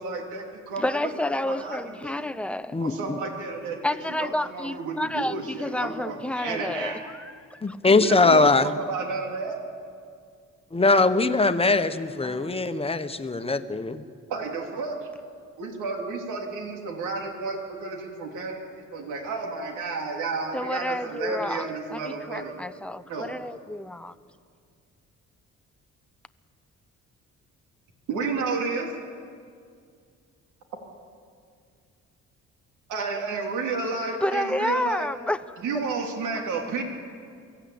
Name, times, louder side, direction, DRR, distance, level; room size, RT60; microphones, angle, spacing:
voice 1, 0.0-1.1 1.4-2.3 2.8-7.1 8.0-9.6 14.3-15.1 15.6-22.6 23.1-23.3 28.1-28.9 32.9-35.1 35.6-36.8, right 4 dB, 85° right, 3.2 m, -31 dB
voice 2, 0.8-2.8 3.8-7.8 12.2-12.5 20.5-24.2 34.2-35.6, left 1 dB, 5° left, 0.7 m, -30 dB
voice 3, 2.7-3.2 7.6-8.7 10.7-14.0, left 3 dB, 20° left, 1.1 m, -21 dB
23.5 x 14.5 x 8.7 m
cardioid pair, 90°, 30 cm